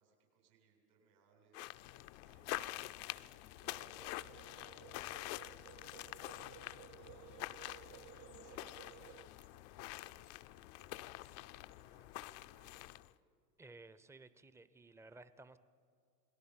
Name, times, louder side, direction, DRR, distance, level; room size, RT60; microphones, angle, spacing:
voice 1, 0.0-7.6 8.1-13.0, right 4 dB, 80° right, 0 dB, 8.0 m, -72 dB
sound 1, 1.5-13.1, left 17 dB, 50° left, 0.6 m, -47 dB
sound 2, 3.6-9.3, right 13 dB, 45° right, 1.0 m, -58 dB
voice 2, 13.6-15.6, right 3 dB, 5° right, 13 dB, 0.6 m, -57 dB
28.5 x 20.5 x 5.9 m, 2.3 s
hypercardioid pair, 100°, 49 cm